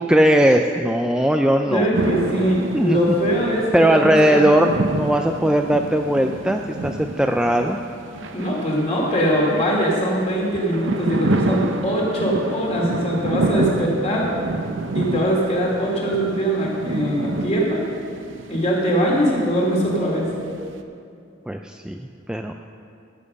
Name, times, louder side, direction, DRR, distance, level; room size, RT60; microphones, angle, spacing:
voice 1, 0.0-1.9 2.7-3.2 3.7-7.8 21.5-22.5, right 1 dB, 5° right, 4 dB, 0.3 m, -19 dB
voice 2, 1.7-4.5 8.3-14.3 14.9-17.8 18.5-20.3, equal, 35° left, -3 dB, 2.7 m, -22 dB
sound 1, 1.9-20.8, right 2 dB, 70° right, 0.7 m, -28 dB
13.5 x 7.2 x 6.4 m, 2.5 s
head